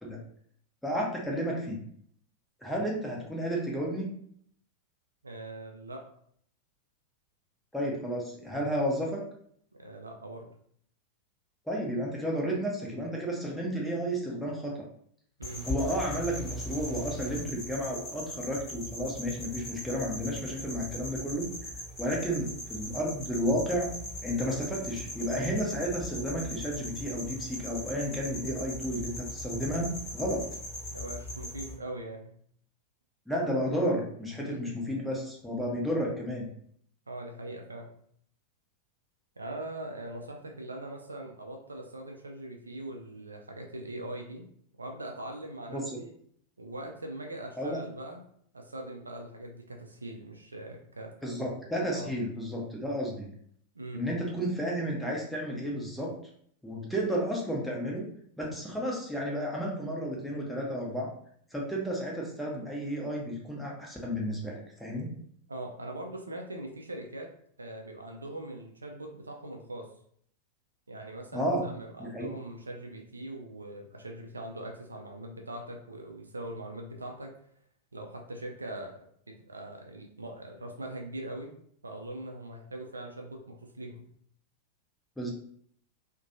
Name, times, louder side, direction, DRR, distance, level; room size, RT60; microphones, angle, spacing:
voice 1, 0.8-1.8 2.6-4.1 7.7-9.2 11.7-14.8 15.6-21.5 22.0-23.9 24.2-30.4 33.3-36.5 45.7-46.0 47.6-47.8 51.2-53.3 53.9-56.1 56.6-58.0 58.4-61.1 61.5-65.1 71.3-71.6 72.0-72.3 85.2-85.3, equal, 5° left, -3 dB, 0.7 m, -32 dB
voice 2, 5.2-6.0 9.8-10.5 15.4-15.7 30.9-32.3 34.4-34.6 37.1-37.9 39.4-44.4 44.8-46.1 46.6-48.2 48.5-51.1 51.9-52.1 53.7-54.1 65.5-67.3 67.6-69.9 70.9-77.3 77.9-79.1 79.5-81.5 81.8-84.0, right 1 dB, 80° right, 2 dB, 0.4 m, -41 dB
sound 1, 15.4-31.8, equal, 25° left, 1.1 m, -39 dB
2.5 x 2.2 x 2.6 m, 0.64 s
figure-of-eight pair, 90°, 0 cm